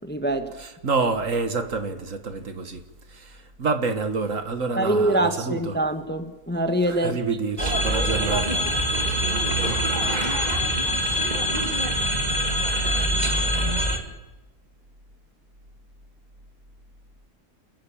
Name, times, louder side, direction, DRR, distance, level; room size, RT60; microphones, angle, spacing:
voice 1, 0.0-0.5 4.8-7.2, right 1 dB, 5° left, 1.1 m, -24 dB
voice 2, 0.6-2.8 3.1-5.8 6.9-8.6, right 4 dB, 55° right, 1.9 m, -28 dB
sound 1, 7.6-14.0, equal, 25° right, 2.4 m, -24 dB
30.0 x 11.0 x 8.6 m
omnidirectional pair, 1.7 m